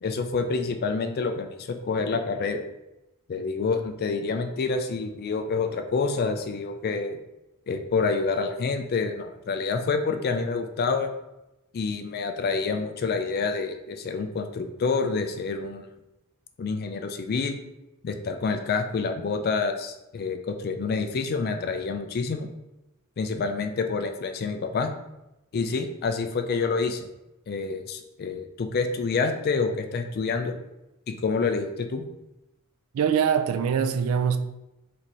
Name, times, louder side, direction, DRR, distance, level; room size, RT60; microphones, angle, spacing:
voice 1, 0.0-2.6 3.3-7.2 7.7-11.1 11.7-15.9 16.6-17.6 18.0-22.5 23.2-24.9 25.5-27.1 27.5-30.5 31.1-32.0, left 4 dB, 45° left, 0.3 m, -27 dB
voice 2, 32.9-34.4, right 7 dB, 75° right, 0.3 m, -23 dB
4.2 x 2.6 x 3.0 m
head